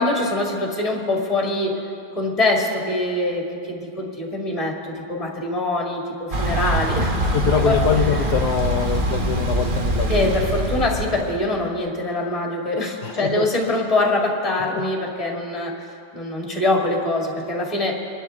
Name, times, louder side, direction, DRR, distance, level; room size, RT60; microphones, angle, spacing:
voice 1, 0.0-1.8 2.2-7.2 7.7-7.8 10.1-15.8 16.1-17.9, left 2 dB, 20° left, -1 dB, 2.1 m, -23 dB
Thunder / Bicycle, 6.3-11.4, right 1 dB, 35° right, 1.1 m, -23 dB
voice 2, 7.3-10.5 13.0-13.5 14.7-14.8, left 7 dB, 75° left, 4 dB, 1.2 m, -24 dB
25.0 x 11.5 x 3.6 m, 2.5 s
omnidirectional pair, 1.8 m